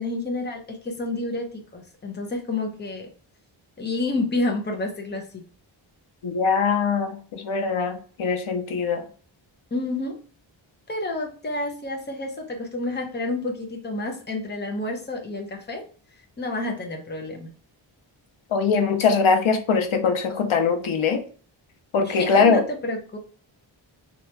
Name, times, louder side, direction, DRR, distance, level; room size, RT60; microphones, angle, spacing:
voice 1, 0.0-3.1 3.8-5.4 9.7-10.2 10.9-15.9 16.4-17.5 22.0-23.2, left 2 dB, 20° left, 2 dB, 0.7 m, -29 dB
voice 2, 6.2-9.0 18.5-21.2 21.9-22.6, left 5 dB, 90° left, 6 dB, 0.8 m, -22 dB
3.5 x 3.0 x 3.2 m, 0.42 s
wide cardioid pair, 160°, 47 cm